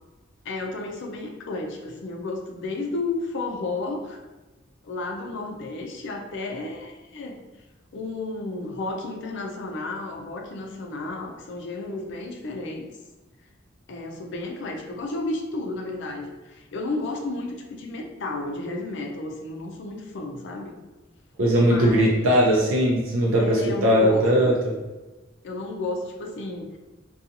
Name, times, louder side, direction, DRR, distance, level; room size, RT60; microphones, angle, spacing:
voice 1, 0.4-4.2 4.8-7.4 7.9-12.9 13.9-20.8 21.6-22.3 23.4-24.5 25.4-26.8, left 2 dB, 65° left, 3 dB, 0.4 m, -32 dB
voice 2, 21.4-24.7, equal, 90° right, -4 dB, 0.5 m, -19 dB
2.5 x 2.3 x 2.7 m, 1.1 s
head